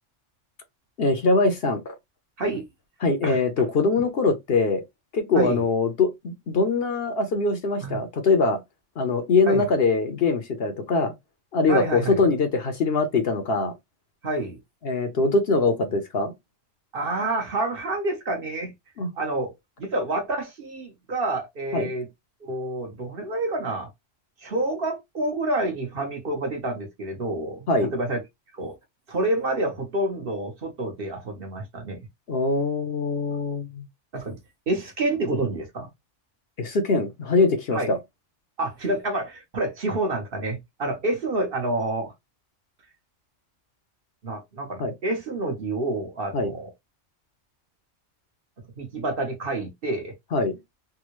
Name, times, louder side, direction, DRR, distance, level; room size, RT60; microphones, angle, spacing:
voice 1, 1.0-1.9 3.0-4.8 5.1-8.6 9.0-11.1 11.5-13.7 14.8-16.3 19.0-19.1 21.7-21.9 27.7-27.9 32.3-33.8 36.6-38.0 44.8-44.9 46.3-46.5 50.3-50.6, left 3 dB, 60° left, 0.8 m, -23 dB
voice 2, 11.7-12.2 14.2-14.6 16.9-18.7 19.2-19.5 19.8-22.1 22.4-23.9 24.4-28.2 28.6-28.7 29.1-32.0 34.1-34.4 34.7-35.9 37.7-37.9 38.6-42.1 44.2-46.7 48.8-50.1, right 2 dB, 50° right, 1.2 m, -28 dB
3.5 x 2.3 x 3.0 m
omnidirectional pair, 1.3 m